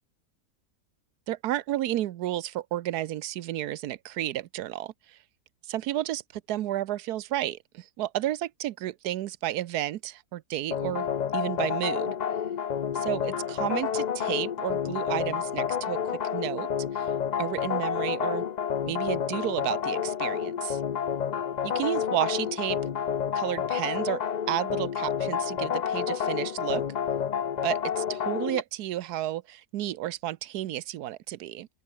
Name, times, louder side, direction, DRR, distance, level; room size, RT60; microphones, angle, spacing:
voice 1, 1.3-5.2 5.7-6.2 6.5-11.1 11.3-12.1 12.9-16.0 16.3-16.7 16.9-17.1 17.4-18.5 18.8-20.8 21.6-22.8 23.3-26.8 27.6-31.7, right 13 dB, 90° right, 1.3 m, -32 dB
sound 1, 10.7-28.6, left 8 dB, 70° left, 0.4 m, -29 dB
open air
omnidirectional pair, 1.6 m